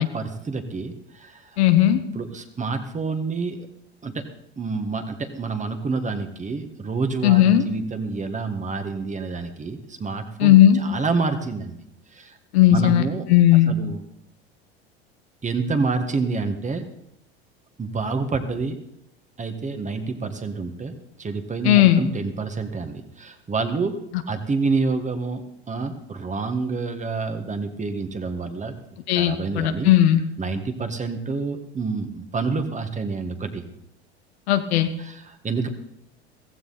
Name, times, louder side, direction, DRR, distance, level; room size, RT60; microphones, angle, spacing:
voice 1, 0.0-1.6 2.1-3.7 4.0-4.2 4.6-11.8 12.1-12.4 12.7-13.3 13.6-14.0 15.4-16.8 17.8-18.8 19.4-23.9 24.3-28.7 29.1-29.9 30.4-33.6 35.0-35.7, right 4 dB, 20° right, 7 dB, 1.8 m, -28 dB
voice 2, 1.6-2.0 7.2-7.6 10.4-10.8 12.5-13.0 13.3-13.7 21.6-22.0 29.1-30.2 34.5-34.9, left 12 dB, 70° left, 9 dB, 1.3 m, -16 dB
15.5 x 15.0 x 4.2 m, 0.78 s
hypercardioid pair, 80°, 33 cm